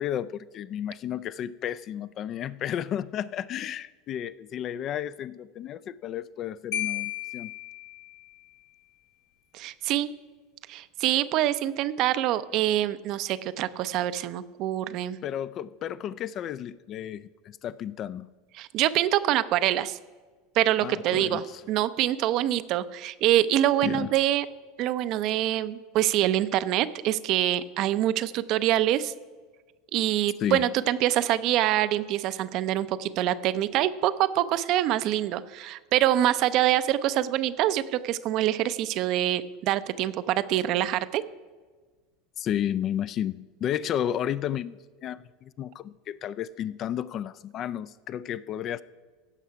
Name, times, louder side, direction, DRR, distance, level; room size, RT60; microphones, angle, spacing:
voice 1, 0.0-7.5 15.2-18.3 20.8-21.6 23.8-24.1 30.4-30.7 42.4-48.8, left 10 dB, 45° left, 0.3 m, -32 dB
Marimba xylophone, 6.7-8.5, left 13 dB, 65° left, 1.0 m, -34 dB
voice 2, 9.5-10.1 10.7-15.2 18.6-20.0 20.5-24.4 24.8-29.1 29.9-41.2, right 13 dB, 55° right, 0.5 m, -25 dB
15.5 x 5.7 x 4.7 m
hypercardioid pair, 90°, 0 cm